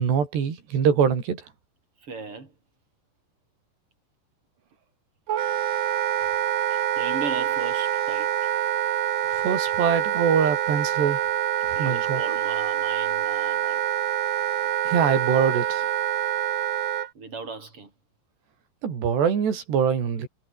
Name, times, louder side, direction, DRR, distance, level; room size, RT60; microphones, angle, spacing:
voice 1, 0.0-1.4 9.4-11.2 11.7-12.2 14.9-15.8 18.8-20.3, right 7 dB, 70° right, 6.2 m, -23 dB
voice 2, 2.0-2.5 6.7-8.5 11.8-13.8 17.1-17.9, right 4 dB, 30° right, 6.3 m, -37 dB
Wind instrument woodwind instrument, 5.3-17.1, right 10 dB, 85° right, 1.4 m, -26 dB
omnidirectional pair, 5.2 m